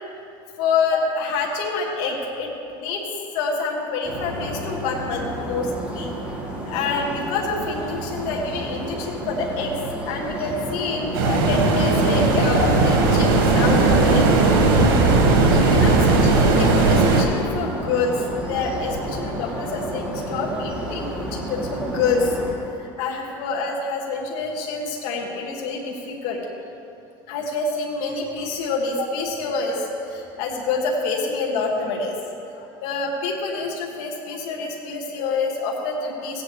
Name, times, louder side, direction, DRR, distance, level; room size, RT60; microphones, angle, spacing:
voice 1, 0.6-3.0 3.3-6.1 6.6-9.8 10.1-14.3 15.5-26.4 27.3-32.2 32.5-36.4, left 4 dB, 70° left, -2 dB, 2.1 m, -27 dB
sound 1, 4.0-22.5, right 1 dB, 10° right, 2.5 m, -31 dB
sound 2, 11.1-17.2, right 3 dB, 80° right, 1.7 m, -17 dB
17.0 x 9.1 x 3.3 m, 2.7 s
supercardioid pair, 105°, 12 cm